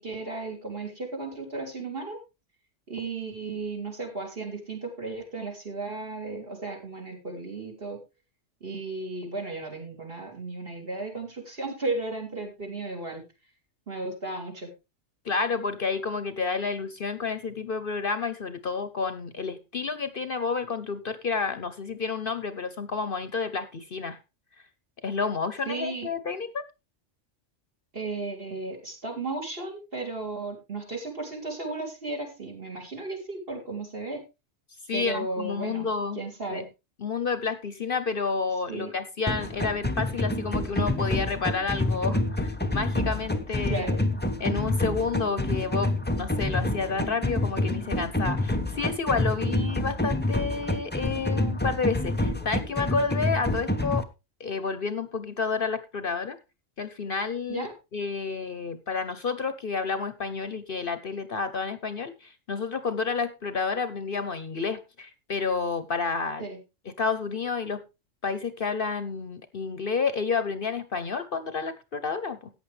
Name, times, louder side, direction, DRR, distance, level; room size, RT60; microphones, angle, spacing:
voice 1, 0.0-2.2 2.9-8.0 8.6-13.2 13.9-14.7 25.7-26.1 27.9-34.2 34.9-35.9 36.1-36.7 38.7-38.9 43.7-44.0 57.5-57.7 66.4-66.6, right 3 dB, 50° right, 1 dB, 3.6 m, -34 dB
voice 2, 15.2-24.2 25.0-26.6 34.9-36.2 36.5-36.6 37.0-43.9 44.4-54.0 54.4-56.4 56.8-57.7 57.9-66.5 66.9-67.8 68.2-72.5, left 5 dB, 50° left, 12 dB, 0.9 m, -30 dB
sound 1, 39.3-54.0, left 1 dB, 10° left, 0.7 m, -28 dB
14.5 x 9.0 x 3.3 m, 0.26 s
omnidirectional pair, 1.3 m